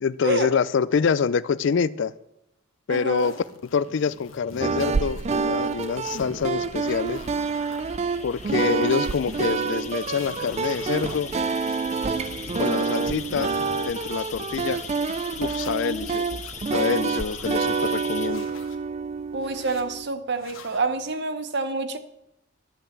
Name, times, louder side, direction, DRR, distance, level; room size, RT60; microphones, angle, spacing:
voice 1, 0.0-2.1 2.9-3.3 3.7-7.2 8.2-11.3 12.5-13.5 13.8-14.8 15.4-16.3 16.7-18.5, left 6 dB, 60° left, 18 dB, 0.4 m, -26 dB
voice 2, 2.9-3.3 19.3-22.0, right 3 dB, 55° right, 11 dB, 0.8 m, -27 dB
sound 1, 3.2-5.3 5.5-7.8 8.2-9.5 9.9-11.2 11.7-14.9 15.4-16.5 17.0-17.7 18.2-18.8 19.4-19.8 20.3-20.8, left 3 dB, 85° left, 1.2 m, -45 dB
sound 2, 3.9-18.3, left 8 dB, 35° left, 0.7 m, -41 dB
sound 3, 4.6-20.1, right 4 dB, 30° right, 0.3 m, -28 dB
11.5 x 5.6 x 7.3 m, 0.85 s
head